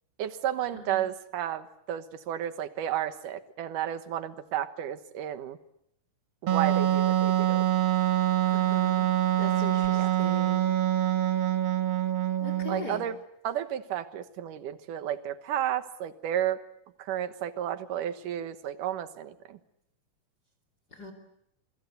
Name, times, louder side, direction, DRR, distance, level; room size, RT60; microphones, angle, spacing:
voice 1, 0.2-5.6 6.4-7.6 9.9-10.1 12.7-13.2 13.4-16.6 17.0-19.6, right 11 dB, 75° right, 11 dB, 2.8 m, -32 dB
Wind instrument woodwind instrument, 6.5-12.9, right 13 dB, 60° right, 2.0 m, -25 dB
voice 2, 8.5-9.1 9.4-10.6 12.4-13.0 20.9-21.1, left 2 dB, 30° left, 7 dB, 3.4 m, -40 dB
27.0 x 25.0 x 8.1 m, 0.77 s
omnidirectional pair, 3.8 m